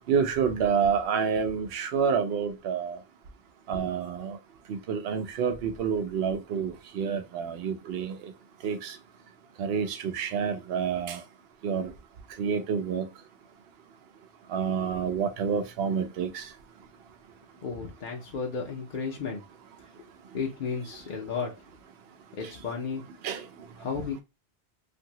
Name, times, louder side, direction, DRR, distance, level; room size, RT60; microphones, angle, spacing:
voice 1, 0.1-3.0 3.7-4.4 4.7-8.2 8.6-9.0 9.6-11.2 11.6-11.9 12.4-13.1 14.5-16.5 23.2-23.5, right 6 dB, 70° right, 0.8 m, -28 dB
voice 2, 17.6-19.4 20.3-21.5 22.4-23.0 23.8-24.2, left 5 dB, 55° left, 0.7 m, -33 dB
2.7 x 2.6 x 2.8 m
omnidirectional pair, 1.1 m